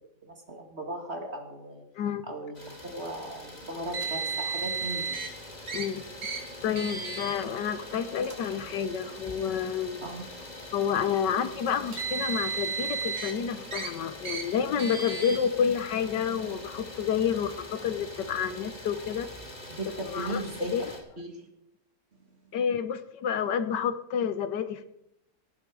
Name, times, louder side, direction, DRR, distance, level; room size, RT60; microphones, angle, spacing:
voice 1, 0.2-1.8 2.3-5.3 10.0-10.3 19.8-20.7 21.2-21.5, right 1 dB, 35° right, 3 dB, 2.4 m, -37 dB
voice 2, 2.0-2.3 5.7-6.0 6.6-10.0 10.7-19.3 20.1-20.4 20.7-20.8 22.5-24.9, left 7 dB, 80° left, 11 dB, 1.6 m, -29 dB
Idling, 2.5-21.0, left 1 dB, 25° left, 2.9 m, -44 dB
Car, 3.9-5.3 5.7-5.8 6.2-6.4 6.8-7.3 8.2-8.3 9.3-9.4 11.7-13.3 13.7-13.9 14.2-14.4 14.8-15.4, right 5 dB, 60° right, 2.8 m, -33 dB
18.0 x 11.0 x 4.8 m, 0.83 s
omnidirectional pair, 1.9 m